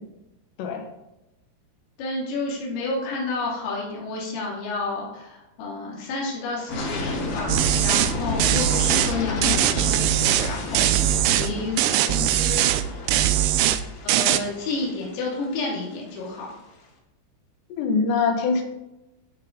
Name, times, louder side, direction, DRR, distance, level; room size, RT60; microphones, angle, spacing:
voice 1, 2.0-7.5 7.8-11.7 12.1-13.0 14.0-16.5, left 3 dB, 85° left, -3 dB, 5.1 m, -30 dB
sound 1, 6.7-16.5, left 2 dB, 50° left, 3.3 m, -31 dB
sound 2, 7.5-8.1 8.4-9.1 9.4-10.5 10.7-11.5 11.8-12.8 13.1-13.8 14.1-14.4, right 13 dB, 80° right, 2.8 m, -21 dB
voice 2, 17.8-18.6, left 4 dB, 65° left, 3 dB, 3.2 m, -23 dB
16.0 x 5.7 x 3.9 m, 0.93 s
omnidirectional pair, 5.8 m